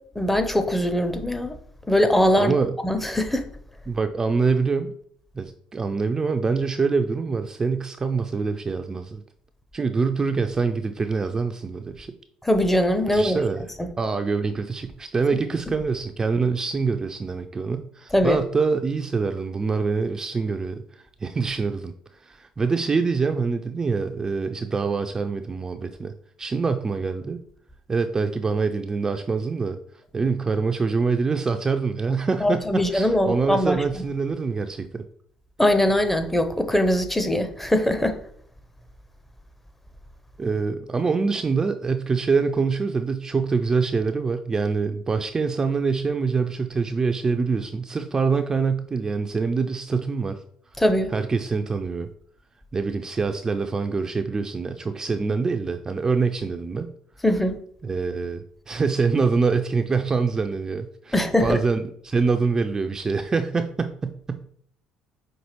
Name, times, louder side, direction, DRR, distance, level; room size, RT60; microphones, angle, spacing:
voice 1, 0.2-1.6 1.9-2.5 2.8-3.4 12.4-13.4 18.1-18.4 32.4-33.8 35.6-38.2 50.8-51.1 57.2-57.6 61.1-61.6, left 1 dB, 10° left, 0.6 m, -21 dB
voice 2, 2.4-2.7 3.9-4.9 5.3-9.2 9.7-12.1 13.1-13.6 14.0-20.8 21.2-21.9 22.2-26.1 26.4-27.4 27.9-29.8 30.1-35.0 40.4-50.4 51.1-52.1 52.7-56.9 57.8-64.6, right 4 dB, 25° right, 0.3 m, -25 dB
5.5 x 2.6 x 2.9 m
hypercardioid pair, 60°, 2 cm